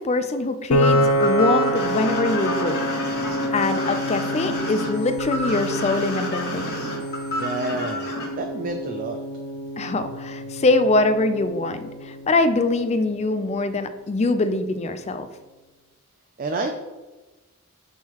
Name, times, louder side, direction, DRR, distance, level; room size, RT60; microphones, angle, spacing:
voice 1, 0.0-2.8 3.5-6.7 9.8-15.3, left 2 dB, 30° left, 10 dB, 0.4 m, -23 dB
Piano, 0.7-13.0, equal, 90° left, 0.6 m, -27 dB
sound 1, 0.8-8.3, left 2 dB, 50° left, 1.8 m, -29 dB
voice 2, 7.3-9.2 16.4-16.8, right 2 dB, 40° right, 4 dB, 0.4 m, -29 dB
10.5 x 3.8 x 3.0 m, 1.2 s
head